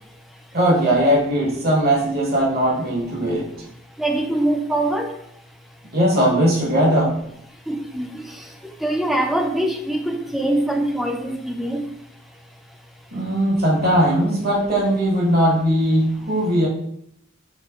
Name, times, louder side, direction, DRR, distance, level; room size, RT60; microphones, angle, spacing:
voice 1, 0.5-3.4 5.9-7.1 13.1-16.7, equal, 50° right, -4 dB, 1.2 m, -19 dB
voice 2, 4.0-5.1 7.7-8.2 8.8-11.8, right 1 dB, ahead, 3 dB, 0.4 m, -23 dB
4.5 x 3.1 x 3.0 m, 0.71 s
head